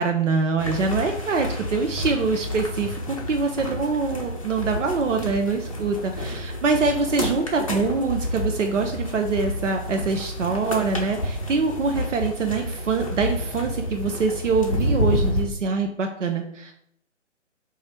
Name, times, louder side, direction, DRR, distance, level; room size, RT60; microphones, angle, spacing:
voice 1, 0.0-16.7, right 4 dB, 75° right, 4 dB, 0.5 m, -24 dB
sound 1, 0.6-15.4, left 1 dB, 30° left, 0.5 m, -29 dB
3.0 x 2.4 x 4.3 m, 0.70 s
figure-of-eight pair, 140°, 37 cm